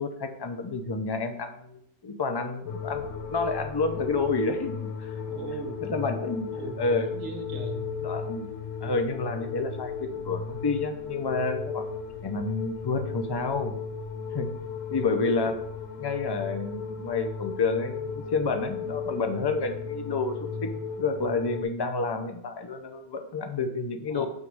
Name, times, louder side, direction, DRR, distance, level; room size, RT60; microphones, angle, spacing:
voice 1, 0.0-5.1 5.8-6.5 6.8-7.1 8.0-8.5 8.8-11.8 12.2-13.8 14.3-14.5 14.9-15.6 16.0-20.7 21.0-24.2, left 3 dB, 40° left, 6 dB, 0.3 m, -29 dB
sound 1, 2.7-21.6, left 5 dB, 85° left, 1.3 m, -35 dB
voice 2, 5.3-5.8 6.5-6.8 7.1-7.9 24.1-24.3, right 5 dB, 90° right, 4 dB, 1.3 m, -39 dB
7.4 x 3.1 x 4.7 m, 0.69 s
omnidirectional pair, 1.3 m